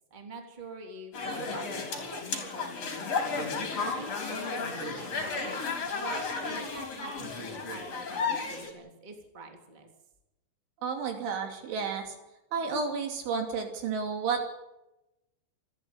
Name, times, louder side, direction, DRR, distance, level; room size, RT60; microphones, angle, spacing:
voice 1, 0.1-3.4 3.9-9.9, right 3 dB, 10° right, 3 dB, 2.4 m, -45 dB
sound 1, 1.1-8.7, left 4 dB, 35° left, 4.3 m, -33 dB
voice 2, 10.8-12.1 12.5-14.5, right 5 dB, 70° right, 4 dB, 5.2 m, -31 dB
28.0 x 11.5 x 9.7 m, 0.95 s
omnidirectional pair, 5.8 m